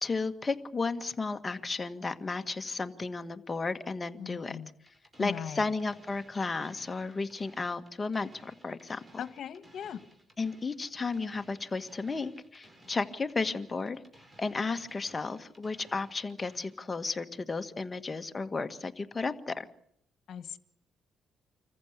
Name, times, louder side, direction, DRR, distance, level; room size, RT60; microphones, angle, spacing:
voice 1, 0.0-4.6 5.2-9.0 10.4-14.0 14.4-19.7, left 3 dB, 25° left, 8 dB, 1.7 m, -33 dB
voice 2, 4.2-4.7 5.2-5.6 9.2-10.0 20.3-20.6, left 8 dB, 65° left, 13 dB, 1.6 m, -39 dB
sound 1, 4.9-16.8, right 1 dB, 30° right, 5.5 m, -59 dB
26.5 x 15.0 x 8.3 m, 0.69 s
cardioid pair, 90°, 0 cm